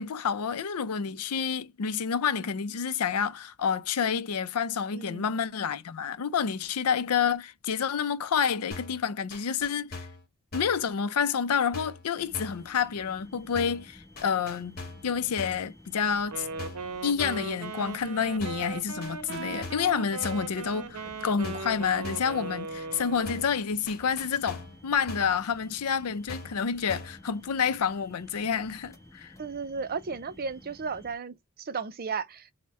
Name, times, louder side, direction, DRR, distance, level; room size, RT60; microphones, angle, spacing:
voice 1, 0.0-10.1 10.5-14.8 15.0-16.5 17.0-29.3, left 6 dB, 85° left, 0.5 m, -29 dB
voice 2, 4.9-5.2 29.4-32.5, right 5 dB, 45° right, 0.5 m, -34 dB
sound 1, 8.7-9.0 9.3-10.2 10.5-10.8 11.7-12.1 12.3-12.7 13.6-13.9 14.2-15.1 15.4-15.7 16.6-16.9 17.2-17.5 18.4-18.7 19.0-19.9 20.2-20.5 21.4-21.8 22.0-22.4 23.3-23.6 23.9-24.8 25.1-25.4 26.3-26.6 26.9-27.2, left 3 dB, 45° left, 1.4 m, -41 dB
sound 2, 12.1-31.2, left 1 dB, 15° left, 1.1 m, -53 dB
Wind instrument woodwind instrument, 16.2-23.5, right 4 dB, 85° right, 0.7 m, -38 dB
4.3 x 2.2 x 3.5 m
head